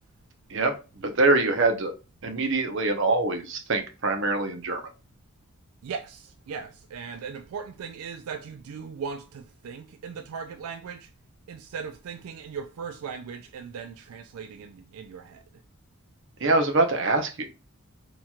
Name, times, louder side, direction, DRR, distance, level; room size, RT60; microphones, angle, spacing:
voice 1, 0.5-1.9 2.2-4.8 16.4-17.5, right 2 dB, 55° right, 0.8 m, -24 dB
voice 2, 5.8-11.1 11.5-15.4, right 6 dB, 85° right, 0.3 m, -38 dB
4.3 x 2.9 x 2.3 m
head